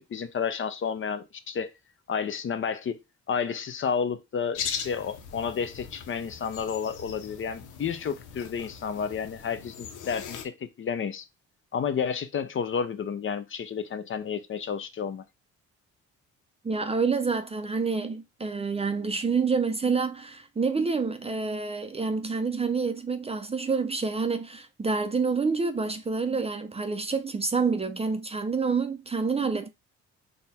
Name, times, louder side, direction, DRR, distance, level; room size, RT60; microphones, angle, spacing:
voice 1, 0.0-1.7 2.1-3.0 3.3-11.2 11.7-15.2, left 6 dB, 40° left, 0.6 m, -31 dB
sound 1, 4.5-10.5, left 7 dB, 90° left, 0.8 m, -39 dB
voice 2, 16.6-29.7, right 4 dB, 20° right, 0.5 m, -28 dB
4.0 x 2.3 x 4.1 m
cardioid pair, 90°, 30 cm